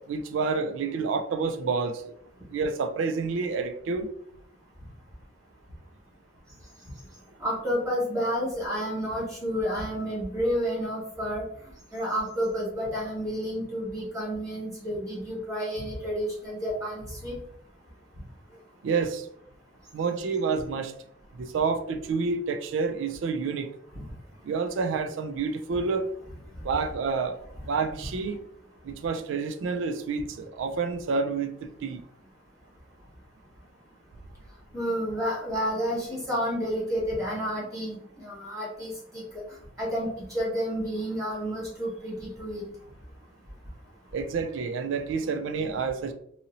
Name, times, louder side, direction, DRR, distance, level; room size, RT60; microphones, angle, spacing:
voice 1, 0.0-2.0 2.5-4.1 18.8-19.3 19.9-20.9 21.4-23.7 24.4-26.1 26.6-27.4 27.7-28.4 28.8-32.0 44.1-46.1, right 4 dB, 70° right, 8 dB, 0.3 m, -29 dB
voice 2, 7.4-11.4 11.9-17.3 34.7-39.2 39.8-42.6, equal, 15° right, -7 dB, 1.4 m, -30 dB
2.8 x 2.7 x 2.6 m, 0.69 s
head